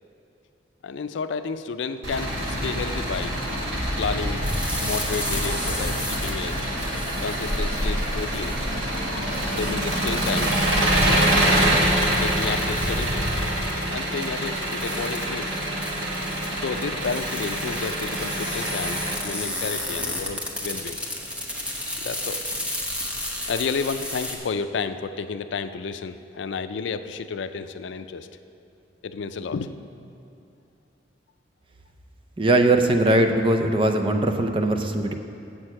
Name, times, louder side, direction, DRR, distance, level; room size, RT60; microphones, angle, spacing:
voice 1, 0.8-3.3 4.0-4.4 4.8-6.6 7.2-8.6 9.5-10.6 10.9-11.3 12.2-13.4 13.9-15.6 16.5-21.0 22.0-22.4 23.5-28.3 29.0-29.7, left 5 dB, 80° left, 10 dB, 0.4 m, -31 dB
Engine, 2.0-19.2, right 1 dB, 80° right, 1.8 m, -25 dB
sound 1, 4.4-24.4, left 1 dB, 5° right, 0.9 m, -33 dB
voice 2, 32.4-35.1, right 1 dB, 30° right, 5 dB, 0.5 m, -20 dB
7.7 x 6.4 x 7.5 m, 2.6 s
head